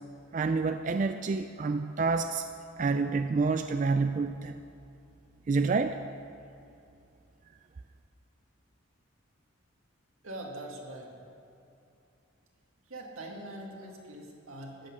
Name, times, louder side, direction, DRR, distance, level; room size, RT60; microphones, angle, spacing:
voice 1, 0.3-2.5 2.8-4.6 5.5-6.0, right 4 dB, 35° right, 8 dB, 0.3 m, -28 dB
voice 2, 10.2-11.1 12.9-14.9, right 1 dB, 85° right, -1 dB, 2.2 m, -43 dB
14.0 x 8.5 x 6.3 m, 2.6 s
head